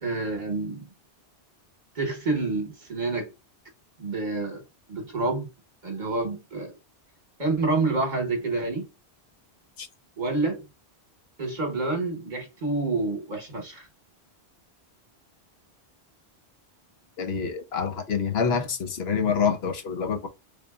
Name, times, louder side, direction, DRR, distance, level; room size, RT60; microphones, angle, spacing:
voice 1, 0.0-0.9 1.9-3.3 4.0-5.5 5.8-6.7 7.4-8.9 10.2-10.6 11.4-13.9, right 3 dB, 45° right, 1.1 m, -28 dB
voice 2, 17.2-20.3, left 6 dB, 70° left, 1.0 m, -26 dB
3.8 x 3.5 x 2.3 m
omnidirectional pair, 1.1 m